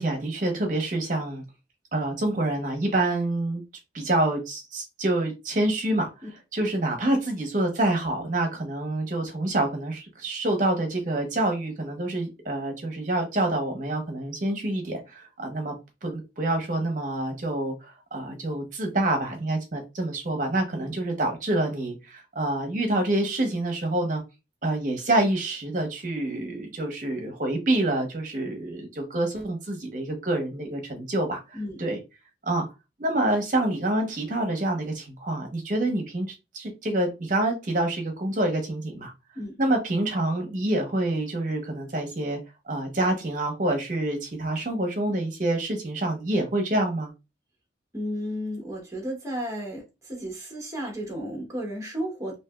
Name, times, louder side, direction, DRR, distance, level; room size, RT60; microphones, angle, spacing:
voice 1, 0.0-1.4 1.9-3.6 3.9-6.1 6.5-15.7 16.0-24.2 24.6-32.0 32.5-32.7 33.0-39.1 39.6-42.4 42.7-47.1, right 1 dB, 45° right, 0.9 m, -27 dB
voice 2, 47.9-52.3, equal, 15° right, 0.9 m, -33 dB
3.3 x 2.7 x 2.3 m
head